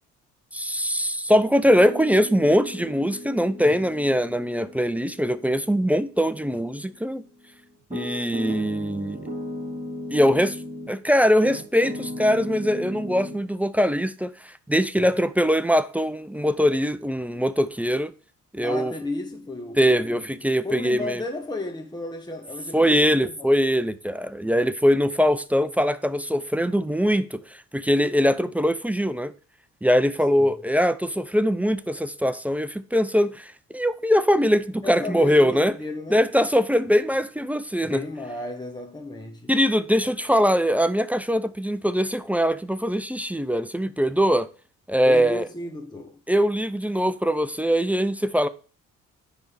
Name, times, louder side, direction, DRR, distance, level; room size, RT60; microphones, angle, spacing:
voice 1, 0.5-7.2 7.9-9.3 10.1-10.6 10.9-18.1 18.5-18.9 19.8-21.2 22.7-29.3 29.8-35.7 36.1-38.0 39.5-44.5 44.9-45.5 46.3-48.5, equal, 5° right, 0.5 m, -22 dB
Piano, 1.6-11.0 11.4-13.4, left 1 dB, 25° right, 3.2 m, -37 dB
voice 2, 18.6-20.3 20.6-23.5 30.3-30.6 34.8-36.2 37.8-39.5 45.1-46.2, left 2 dB, 15° left, 1.2 m, -34 dB
9.8 x 3.6 x 6.8 m
cardioid pair, 90°, 30 cm